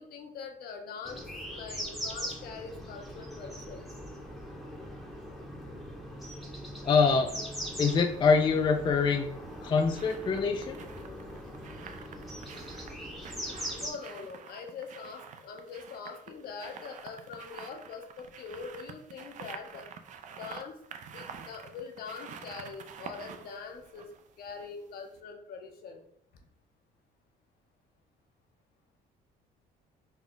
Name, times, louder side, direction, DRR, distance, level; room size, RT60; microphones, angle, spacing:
voice 1, 0.0-3.9 13.8-19.9 20.4-20.8 21.1-24.1 24.4-26.0 26.3-26.4, left 5 dB, 65° left, 4 dB, 0.8 m, -43 dB
sound 1, 1.1-13.9, equal, ahead, 0.8 m, -41 dB
voice 2, 6.8-7.3 7.8-9.3 9.6-10.8, left 5 dB, 30° left, 4 dB, 0.3 m, -24 dB
sound 2, 7.3-8.0 9.3-24.8 25.1-25.2, right 7 dB, 45° right, 0.4 m, -48 dB
4.0 x 2.3 x 3.7 m, 0.69 s
cardioid pair, 110°, 17 cm